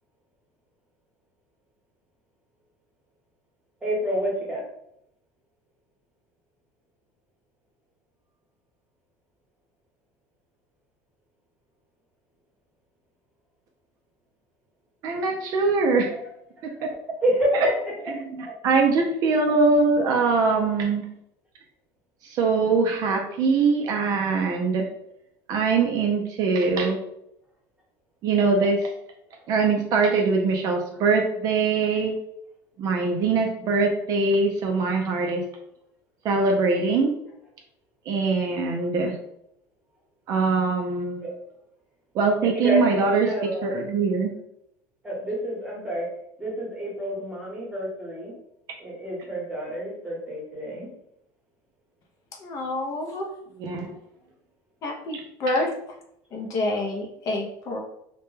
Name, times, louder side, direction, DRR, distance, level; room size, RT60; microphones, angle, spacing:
voice 1, 3.8-4.6 16.1-16.2 16.6-17.7 18.4-18.5 41.2-41.3 42.5-43.7 45.0-46.1 46.4-48.3 48.8-50.9, right 1 dB, 10° right, -4 dB, 0.9 m, -28 dB
voice 2, 15.0-16.1 16.6-16.9 17.5-17.7 18.0-21.1 22.2-24.9 25.5-27.0 28.2-28.9 29.5-32.2 32.8-35.4 36.2-37.1 38.1-39.2 40.3-41.3 42.1-44.3 53.6-53.9 55.1-55.6, right 4 dB, 45° right, 2 dB, 0.4 m, -23 dB
voice 3, 52.4-53.3 54.8-55.7 56.3-57.8, left 2 dB, 40° left, 1 dB, 0.5 m, -28 dB
2.1 x 2.1 x 3.0 m, 0.76 s
cardioid pair, 145°, 9 cm